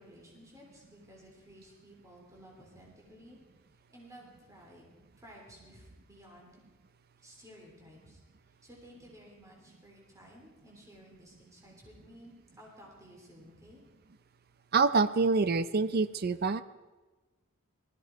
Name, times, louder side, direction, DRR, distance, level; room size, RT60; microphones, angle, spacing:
voice 1, 0.0-3.4 3.9-4.8 5.2-6.6 7.2-8.2 8.6-13.8, equal, 15° right, -3 dB, 3.4 m, -55 dB
voice 2, 14.7-16.6, right 4 dB, 45° right, 13 dB, 0.5 m, -26 dB
19.0 x 14.5 x 4.6 m, 1.2 s
head